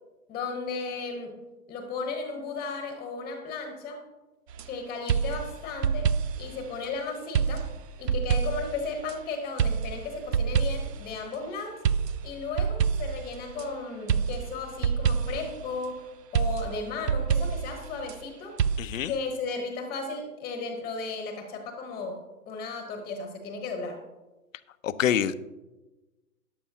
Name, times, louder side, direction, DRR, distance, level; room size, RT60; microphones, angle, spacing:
voice 1, 0.3-1.4 1.7-4.0 4.6-7.7 8.0-11.8 12.2-18.6 19.1-24.0, left 4 dB, 10° left, 5 dB, 1.0 m, -35 dB
sound 1, 4.5-4.7 5.1-6.5 7.3-9.2 9.6-11.1 11.8-13.7 14.1-15.6 16.3-18.2 18.6-18.8, right 7 dB, 80° right, 0.6 m, -27 dB
voice 2, 18.8-19.1 24.8-25.4, left 9 dB, 55° left, 15 dB, 0.6 m, -26 dB
14.0 x 10.0 x 2.8 m, 1.1 s
hypercardioid pair, 135°, 48 cm